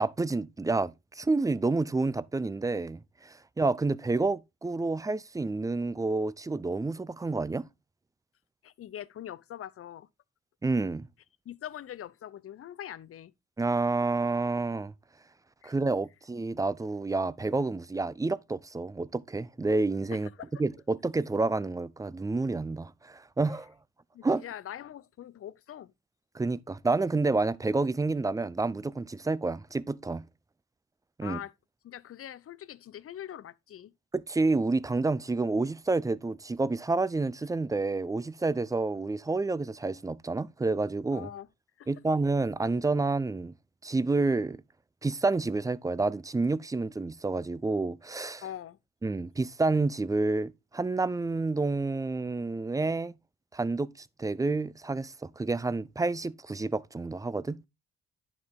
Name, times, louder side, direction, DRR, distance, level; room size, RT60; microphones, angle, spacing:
voice 1, 0.0-7.7 10.6-11.0 13.6-14.9 15.6-20.3 20.6-23.7 24.2-24.4 26.3-30.2 31.2-31.4 34.1-41.3 41.9-43.5 43.8-44.6 45.0-48.4 49.0-53.1 53.5-57.6, right 3 dB, 10° right, 0.4 m, -29 dB
voice 2, 8.6-10.1 11.5-13.3 15.6-15.7 20.1-20.5 24.1-25.9 31.2-31.5 31.8-33.9 41.1-41.5 41.8-41.9 48.4-48.8, left 11 dB, 50° left, 0.6 m, -42 dB
10.5 x 4.8 x 3.6 m
cardioid pair, 90°, 30 cm